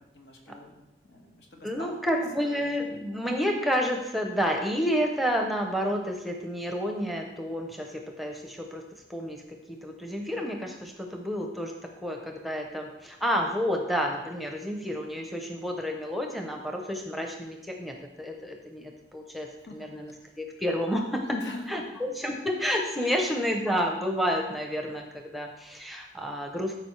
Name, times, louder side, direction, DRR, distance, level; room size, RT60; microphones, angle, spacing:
voice 1, 0.1-1.9 2.4-2.9 19.7-19.9 20.2-20.3 21.2-21.8 23.0-23.2, left 2 dB, 75° left, 1 dB, 1.5 m, -42 dB
voice 2, 1.6-8.8 9.1-9.4 9.7-21.4 21.7-26.8, equal, ahead, 2 dB, 0.6 m, -30 dB
13.5 x 4.9 x 3.2 m, 1.0 s
head